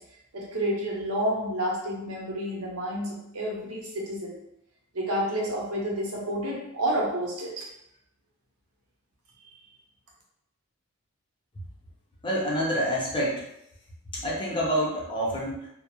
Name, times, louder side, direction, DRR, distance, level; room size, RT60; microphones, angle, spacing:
voice 1, 0.3-4.4 4.9-7.6, right 1 dB, 85° right, -3 dB, 0.8 m, -30 dB
voice 2, 12.2-13.5 14.1-15.7, equal, 20° left, -4 dB, 0.5 m, -27 dB
2.3 x 2.0 x 2.9 m, 0.80 s
head